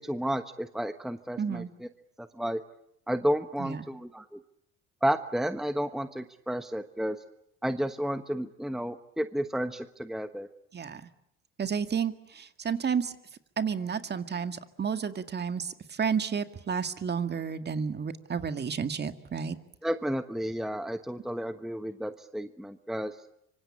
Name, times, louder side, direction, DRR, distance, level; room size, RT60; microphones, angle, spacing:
voice 1, 0.0-1.6 2.2-2.6 3.1-4.4 5.0-7.2 7.6-10.5 19.8-23.1, equal, ahead, 9 dB, 1.1 m, -31 dB
voice 2, 1.4-1.7 3.6-3.9 10.7-11.1 11.6-13.1 13.6-19.6, right 6 dB, 35° right, 9 dB, 2.0 m, -31 dB
25.5 x 24.5 x 8.6 m, 0.76 s
supercardioid pair, 90°, 30 cm